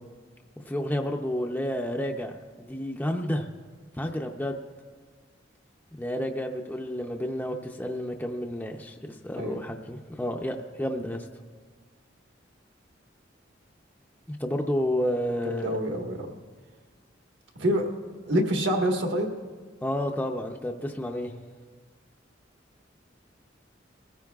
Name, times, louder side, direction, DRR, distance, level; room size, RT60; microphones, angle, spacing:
voice 1, 0.6-3.5 4.0-4.6 6.0-11.2 14.3-15.8 19.8-21.3, equal, 10° left, 2 dB, 0.5 m, -30 dB
voice 2, 15.4-16.3 17.5-17.9 18.3-19.3, equal, 65° right, 2 dB, 1.5 m, -26 dB
21.5 x 15.0 x 2.4 m, 1.5 s
head